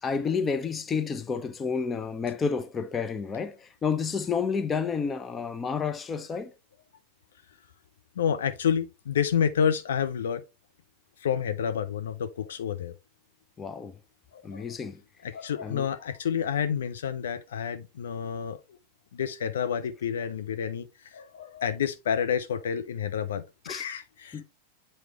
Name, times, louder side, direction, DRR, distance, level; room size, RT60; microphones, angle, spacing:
voice 1, 0.0-6.5 13.6-14.0 14.4-15.0 15.6-15.9 23.6-23.8 24.3-24.4, left 5 dB, 20° left, 0.8 m, -30 dB
voice 2, 8.2-10.4 11.2-12.9 14.3-14.6 15.2-18.6 19.1-24.4, left 8 dB, 65° left, 0.6 m, -29 dB
7.8 x 4.5 x 3.1 m
figure-of-eight pair, 90°, 0 cm